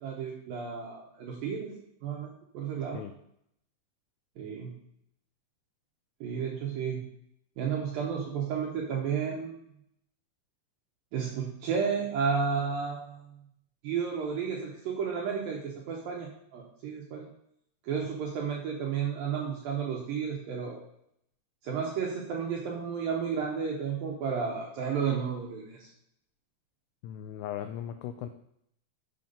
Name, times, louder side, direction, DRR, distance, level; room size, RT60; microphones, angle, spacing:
voice 1, 0.0-1.8 2.0-2.3 2.5-3.0 4.4-4.7 6.2-7.0 7.6-9.6 11.1-13.4 13.8-17.3 17.8-20.8 21.6-25.9, right 6 dB, 75° right, -1 dB, 2.1 m, -32 dB
voice 2, 27.0-28.3, left 10 dB, 90° left, 9 dB, 2.4 m, -38 dB
7.5 x 5.6 x 5.2 m, 0.73 s
omnidirectional pair, 5.3 m